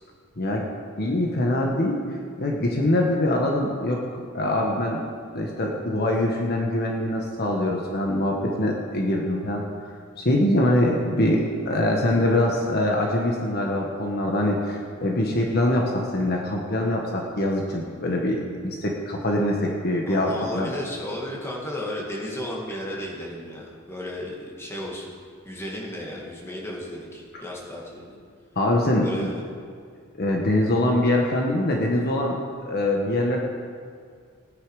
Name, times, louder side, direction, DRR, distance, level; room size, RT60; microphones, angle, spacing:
voice 1, 1.0-2.0 2.4-5.0 5.3-9.6 10.2-20.7 27.3-27.4 28.6-29.3 30.2-33.4, left 1 dB, 50° left, -1 dB, 1.3 m, -23 dB
voice 2, 20.1-25.1 25.4-28.2 29.0-29.4, left 1 dB, 10° left, -3 dB, 2.2 m, -34 dB
17.0 x 9.9 x 4.9 m, 2.1 s
head